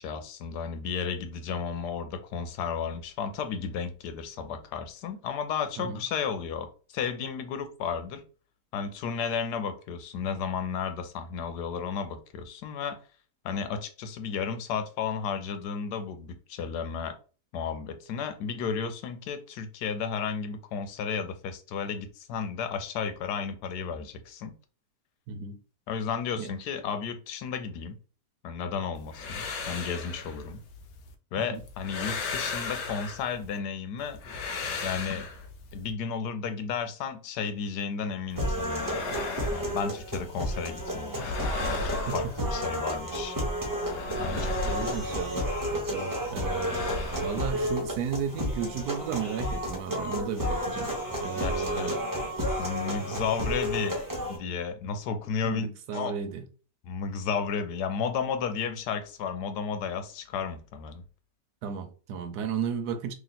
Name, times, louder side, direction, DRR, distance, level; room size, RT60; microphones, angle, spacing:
voice 1, 0.0-8.2 8.7-13.0 13.4-17.1 17.5-24.5 25.9-28.0 28.4-30.6 31.3-34.2 34.8-35.3 35.7-39.0 39.5-43.4 44.2-45.0 51.4-52.0 52.6-54.0 54.3-55.7 55.9-56.2 56.8-61.0, left 6 dB, 90° left, 1.2 m, -33 dB
voice 2, 25.3-25.6 26.4-26.5 31.4-31.6 42.1-42.5 44.2-46.9 47.2-50.9 51.2-52.0 53.1-53.3 55.4-56.4 61.6-63.1, right 7 dB, 80° right, 1.2 m, -34 dB
sound 1, 29.0-31.1 31.6-33.6 34.0-35.9 38.3-40.5 40.8-43.0 43.3-45.9 46.2-48.5, left 3 dB, 70° left, 1.1 m, -37 dB
sound 2, 38.4-54.4, equal, 15° right, 0.7 m, -32 dB
3.0 x 2.7 x 4.0 m
omnidirectional pair, 1.7 m